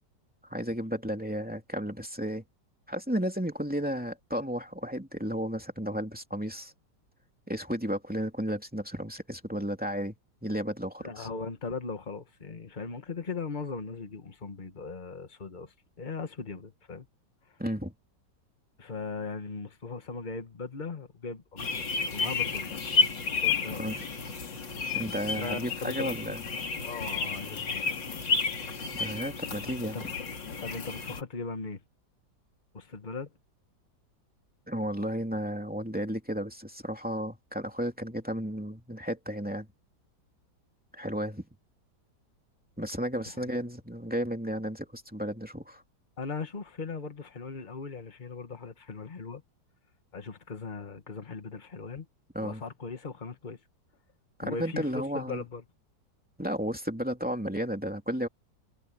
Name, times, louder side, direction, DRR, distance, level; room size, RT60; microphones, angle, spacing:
voice 1, 0.5-2.4 2.9-6.7 7.5-10.1 10.4-11.3 17.6-17.9 23.8-24.0 24.9-26.4 28.9-30.1 34.7-39.7 40.9-41.4 42.8-45.8 52.3-52.6 54.4-55.4 56.4-58.3, equal, 5° right, 2.8 m, -33 dB
voice 2, 11.0-17.1 18.8-22.8 23.3-24.1 24.7-24.9 25.4-26.1 26.8-27.9 29.8-30.3 30.6-31.8 32.7-33.3 43.3-43.5 46.2-49.4 50.1-52.1 52.4-53.6 54.4-55.6, left 4 dB, 25° left, 1.7 m, -39 dB
sound 1, 21.6-31.2, left 5 dB, 90° left, 3.2 m, -31 dB
omnidirectional pair, 1.9 m